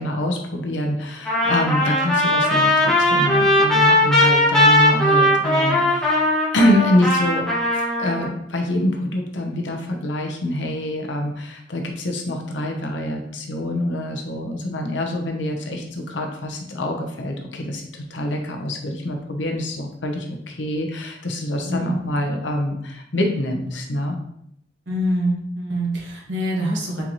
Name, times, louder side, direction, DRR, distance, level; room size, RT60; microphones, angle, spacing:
voice 1, 0.0-24.2, left 1 dB, 80° left, 3 dB, 0.8 m, -25 dB
Trumpet, 1.3-8.3, left 1 dB, 5° left, 1.2 m, -18 dB
voice 2, 21.6-22.0 24.9-27.0, equal, 75° right, -2 dB, 1.3 m, -24 dB
4.5 x 3.9 x 3.0 m, 0.74 s
head